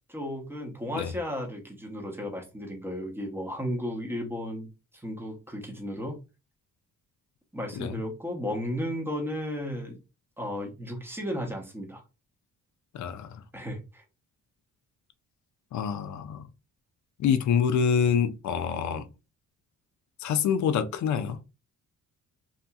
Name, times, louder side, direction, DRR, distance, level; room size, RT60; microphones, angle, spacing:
voice 1, 0.1-4.7 4.9-6.2 7.5-10.0 10.4-12.0 13.5-14.0, equal, 5° right, 0.8 m, -34 dB
voice 2, 12.9-13.4 15.7-16.5 17.2-19.1 20.2-21.4, left 7 dB, 60° left, 0.4 m, -26 dB
2.8 x 2.7 x 2.3 m
cardioid pair, 125°, 33 cm